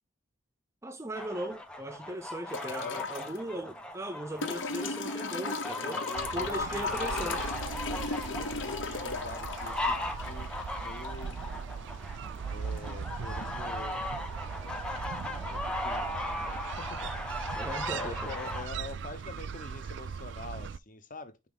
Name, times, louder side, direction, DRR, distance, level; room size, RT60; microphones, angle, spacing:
voice 1, 0.8-6.0 6.3-7.4 17.6-18.4, right 1 dB, 15° right, 0.6 m, -38 dB
sound 1, 1.1-18.7, left 1 dB, 5° left, 0.9 m, -38 dB
sound 2, 2.5-3.4 4.4-11.4 12.8-12.9, left 4 dB, 70° left, 0.9 m, -36 dB
voice 2, 2.7-3.1 5.7-10.5 10.8-11.3 12.5-14.1 14.6-15.0 15.5-17.3 17.9-21.5, left 2 dB, 40° left, 1.0 m, -45 dB
sound 3, 6.1-20.8, right 6 dB, 60° right, 0.3 m, -39 dB
5.8 x 4.5 x 3.9 m
head